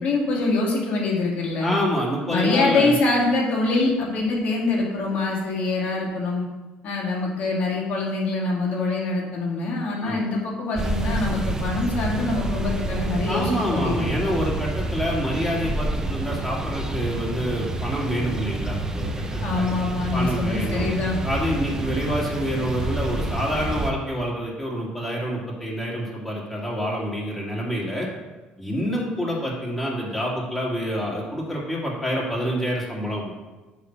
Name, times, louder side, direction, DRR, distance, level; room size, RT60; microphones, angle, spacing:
voice 1, 0.0-1.8 2.3-6.5 6.8-14.1 19.4-21.2, left 3 dB, 50° left, -3 dB, 2.2 m, -24 dB
voice 2, 1.6-2.9 10.0-10.2 13.3-19.7 20.1-20.9 21.2-28.1 28.6-33.3, equal, 10° left, -4 dB, 2.0 m, -27 dB
sound 1, 10.7-23.9, right 2 dB, 15° right, 0.6 m, -28 dB
8.4 x 3.3 x 5.9 m, 1.2 s
cardioid pair, 120°, 3 cm